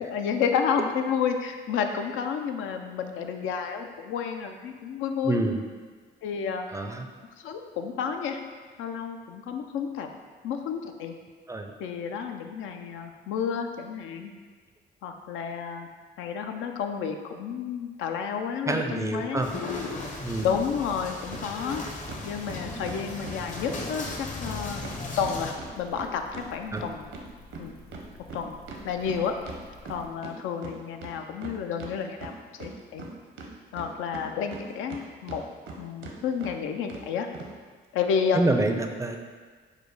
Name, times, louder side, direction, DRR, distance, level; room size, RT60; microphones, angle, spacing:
voice 1, 0.1-5.4 6.2-6.7 7.4-8.4 8.8-10.1 10.4-11.1 11.8-14.3 15.0-15.9 16.2-19.5 20.4-21.8 22.2-24.8 25.2-27.1 27.6-27.8 28.3-28.6 28.8-29.3 29.9-33.0 33.7-35.4 35.8-37.3 37.9-38.5, left 7 dB, 85° left, 5 dB, 0.4 m, -30 dB
voice 2, 5.2-5.6 6.7-7.1 11.5-11.7 18.7-19.5 20.2-20.5 26.7-26.9 38.3-39.2, right 2 dB, 15° right, 5 dB, 0.4 m, -27 dB
sound 1, 19.4-25.5, left 3 dB, 40° left, 0.7 m, -36 dB
sound 2, 21.3-21.4 21.7-23.4 23.7-23.8 24.1-24.2 24.4-24.5 24.8-27.3 27.5-30.3 30.6-30.7 31.0-31.9 32.2-33.1 33.4-35.0 35.3-35.8 36.0-36.1 36.4-36.5 36.9-37.0 37.3-37.5, right 4 dB, 80° right, 0.7 m, -40 dB
sound 3, 24.1-30.1, left 1 dB, 55° left, 1.4 m, -51 dB
4.9 x 2.2 x 4.7 m, 1.5 s
cardioid pair, 90°, 20 cm